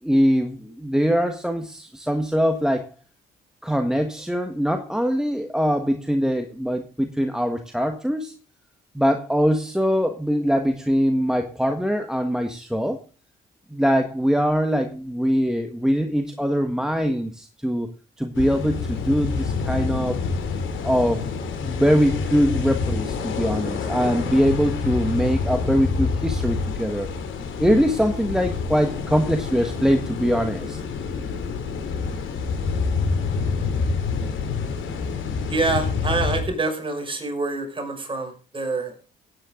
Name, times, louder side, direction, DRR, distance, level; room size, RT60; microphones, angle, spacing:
voice 1, 0.0-2.9 3.6-8.3 8.9-13.0 13.7-17.9 18.2-20.2 20.8-21.2 21.6-27.1 27.6-30.8, equal, 5° right, 6 dB, 1.5 m, -22 dB
sound 1, 18.3-36.4, left 5 dB, 80° left, 3.0 m, -27 dB
voice 2, 35.5-39.1, right 3 dB, 25° right, 3 dB, 6.0 m, -26 dB
16.5 x 9.9 x 3.8 m, 0.34 s
cardioid pair, 90°, 20 cm